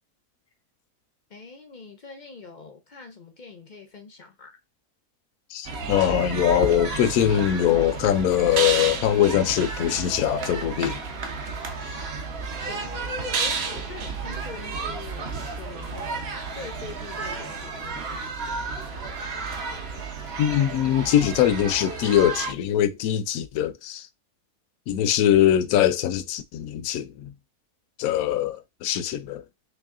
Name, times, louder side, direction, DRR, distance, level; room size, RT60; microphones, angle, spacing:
voice 1, 1.3-4.6 12.7-18.8, left 4 dB, 55° left, 0.5 m, -44 dB
voice 2, 5.5-11.0 20.4-24.1 24.9-27.3 28.0-29.4, left 11 dB, 70° left, 1.0 m, -22 dB
sound 1, 5.6-22.5, right 4 dB, 50° right, 0.9 m, -32 dB
3.2 x 3.1 x 3.6 m
omnidirectional pair, 1.7 m